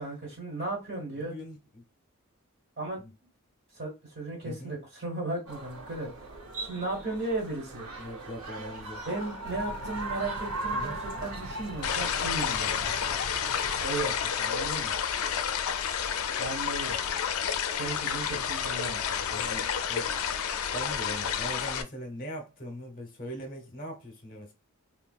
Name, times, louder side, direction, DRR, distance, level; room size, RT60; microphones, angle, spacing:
voice 1, 0.0-1.3 2.8-3.0 3.7-6.1 6.6-7.9 9.1-13.2 13.8-14.9 16.4-17.0 17.8-19.4, right 2 dB, 50° right, 1.4 m, -36 dB
voice 2, 1.1-1.8 3.0-3.1 4.4-4.7 8.0-9.0 10.7-11.0 19.4-20.2 20.7-24.5, equal, 40° left, 0.9 m, -41 dB
sound 1, 5.5-11.9, right 2 dB, 90° right, 0.8 m, -38 dB
sound 2, 9.5-13.9, right 2 dB, 65° right, 0.5 m, -44 dB
sound 3, 11.8-21.8, left 8 dB, 75° left, 0.4 m, -30 dB
3.9 x 2.3 x 2.3 m
head